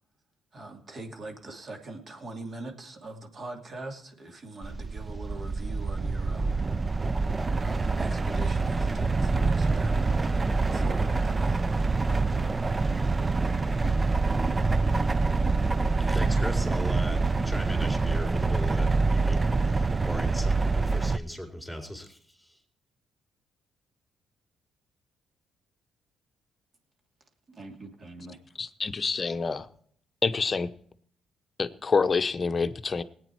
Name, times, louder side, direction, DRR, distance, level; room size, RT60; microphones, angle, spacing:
voice 1, 0.5-6.6 7.6-10.4 10.7-12.7 27.5-28.4, right 2 dB, 45° right, 3 dB, 2.7 m, -43 dB
sound 1, 4.6-21.2, right 3 dB, 25° right, 0.5 m, -26 dB
voice 2, 16.0-22.6, equal, ahead, 4 dB, 4.1 m, -38 dB
voice 3, 28.6-29.7 30.2-30.7 31.6-33.0, left 4 dB, 35° left, 11 dB, 0.8 m, -27 dB
18.5 x 9.1 x 4.6 m, 0.62 s
cardioid pair, 90°, 0 cm